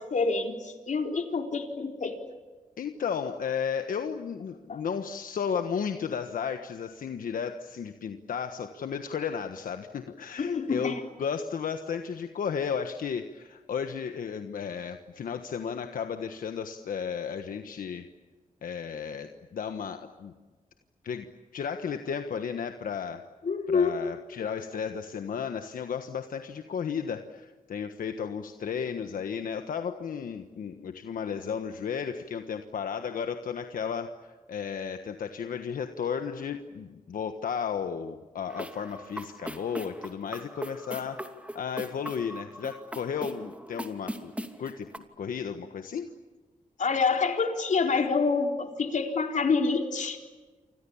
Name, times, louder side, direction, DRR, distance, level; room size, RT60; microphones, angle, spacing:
voice 1, 0.0-2.2 4.7-4.8 10.4-11.0 23.4-23.9 46.8-50.2, left 4 dB, 60° left, 4 dB, 4.2 m, -27 dB
voice 2, 2.8-18.1 18.6-20.3 21.0-23.2 23.7-44.3 44.6-44.9 45.2-46.1, left 7 dB, 90° left, 7 dB, 1.4 m, -34 dB
sound 1, 38.5-45.0, right 1 dB, 10° right, 2.7 m, -40 dB
29.5 x 26.0 x 7.2 m, 1.4 s
cardioid pair, 85°, 14 cm